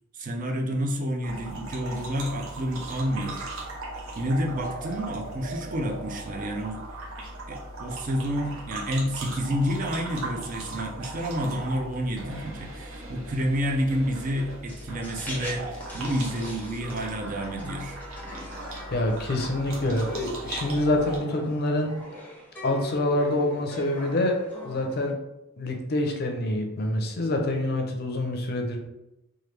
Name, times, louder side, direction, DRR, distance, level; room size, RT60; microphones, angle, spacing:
voice 1, 0.1-3.6 4.2-6.8 7.5-18.0, equal, 40° right, 2 dB, 0.4 m, -29 dB
sound 1, 1.2-21.2, right 2 dB, 85° right, 0.7 m, -38 dB
sound 2, 14.7-25.1, equal, 10° left, 0.6 m, -42 dB
voice 2, 18.9-21.9 22.6-24.4 24.6-25.2 25.6-28.8, left 1 dB, 50° left, 3 dB, 0.5 m, -26 dB
3.0 x 2.2 x 3.2 m, 0.92 s
head